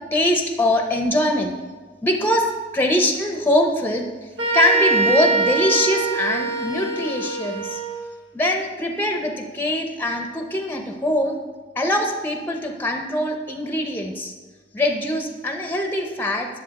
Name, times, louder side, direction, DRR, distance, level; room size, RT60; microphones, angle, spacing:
voice 1, 0.1-1.5 2.0-2.5 2.7-4.1 4.5-7.8 8.3-11.4 11.8-14.3 14.7-16.5, left 1 dB, 10° left, 4 dB, 0.7 m, -22 dB
sound 1, 4.4-8.0, right 4 dB, 80° right, 1.5 m, -23 dB
10.0 x 7.1 x 4.1 m, 1.4 s
head